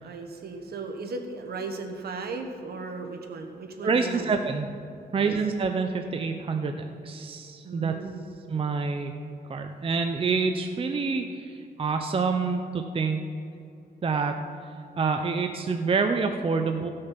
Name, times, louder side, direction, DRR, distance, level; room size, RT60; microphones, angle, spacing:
voice 1, 0.0-4.3 5.1-5.3 7.6-8.3, right 3 dB, 65° right, 4 dB, 1.4 m, -36 dB
voice 2, 3.8-4.7 5.1-7.9 8.5-9.1 9.5-13.2 14.0-14.4 15.0-16.9, right 4 dB, 30° right, 5 dB, 0.6 m, -27 dB
15.5 x 6.4 x 5.9 m, 2.5 s
cardioid pair, 115°, 17 cm